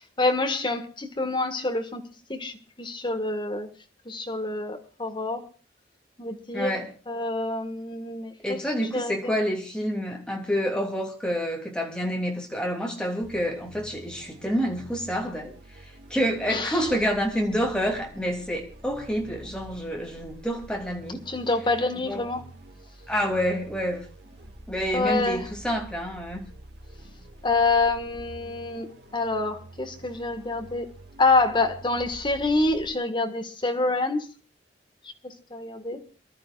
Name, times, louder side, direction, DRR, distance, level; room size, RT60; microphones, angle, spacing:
voice 1, 0.0-2.0 2.3-3.7 4.1-5.5 6.2-6.7 7.1-8.6 8.9-9.4 16.5-16.8 21.3-22.4 24.9-25.5 27.4-30.9 31.2-34.3 35.2-36.0, left 3 dB, 25° left, 1.8 m, -27 dB
voice 2, 6.5-6.9 8.4-15.6 16.1-21.2 22.1-22.2 23.1-24.0 24.7-26.4, equal, 5° left, 3.1 m, -28 dB
sound 1, 13.2-32.9, right 1 dB, 65° right, 2.2 m, -47 dB
28.0 x 12.5 x 2.5 m
head